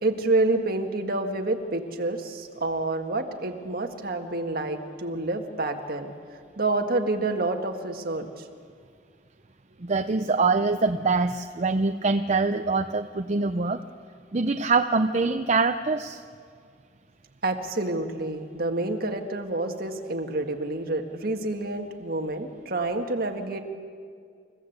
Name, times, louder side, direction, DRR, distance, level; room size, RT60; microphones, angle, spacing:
voice 1, 0.0-6.1 6.6-8.3 17.4-23.6, right 2 dB, 55° right, 4 dB, 1.8 m, -28 dB
voice 2, 9.8-13.8 14.3-16.2, right 3 dB, 40° right, 7 dB, 0.7 m, -24 dB
28.5 x 15.5 x 8.1 m, 2.2 s
head